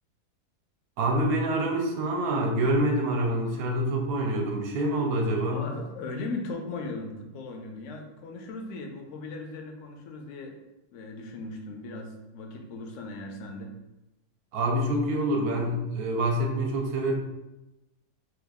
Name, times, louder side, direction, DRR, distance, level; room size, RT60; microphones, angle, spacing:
voice 1, 1.0-5.6 14.5-17.1, right 1 dB, 75° right, 1 dB, 1.0 m, -26 dB
voice 2, 5.5-10.6 10.9-13.8, left 3 dB, 70° left, 3 dB, 0.7 m, -38 dB
3.0 x 2.3 x 3.4 m, 0.98 s
omnidirectional pair, 1.7 m